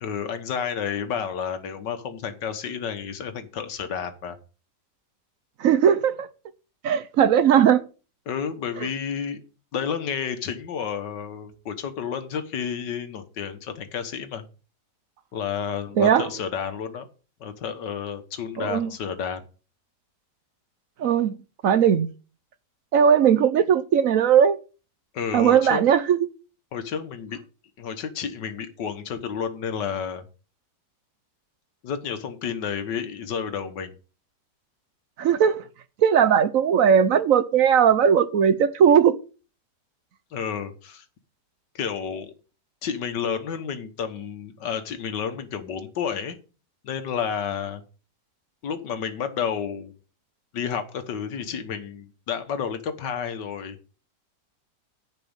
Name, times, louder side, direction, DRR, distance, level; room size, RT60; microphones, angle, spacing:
voice 1, 0.0-4.4 8.3-9.4 9.7-14.4 15.3-17.1 17.4-19.4 25.1-25.8 26.7-27.4 27.8-30.2 31.8-33.9 40.3-41.1 41.8-42.3 42.8-46.4 46.8-47.8 48.6-49.9 50.5-53.8, left 7 dB, 90° left, 1.9 m, -31 dB
voice 2, 5.6-6.3 6.8-7.8 16.0-16.3 18.6-18.9 21.0-21.4 21.6-22.1 22.9-24.6 25.3-26.3 35.2-35.7 36.0-39.2, right 8 dB, 60° right, 1.0 m, -18 dB
10.5 x 5.0 x 8.0 m
omnidirectional pair, 1.8 m